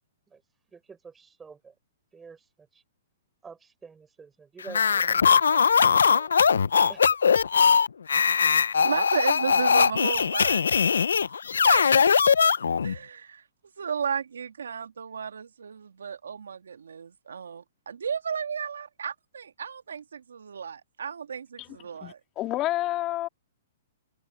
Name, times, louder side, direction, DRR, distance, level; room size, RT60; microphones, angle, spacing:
voice 1, 0.7-1.7 2.1-2.8 3.4-6.5 6.9-7.1, right 5 dB, 10° right, 6.2 m, -48 dB
sound 1, 4.7-13.0, left 6 dB, 80° left, 0.8 m, -21 dB
voice 2, 8.8-10.8 11.6-11.8 12.1-12.2 12.8-13.4 13.8-22.2, right 7 dB, 80° right, 2.1 m, -33 dB
voice 3, 22.0-23.3, left 15 dB, 30° left, 3.2 m, -29 dB
hypercardioid pair, 130°, 0 cm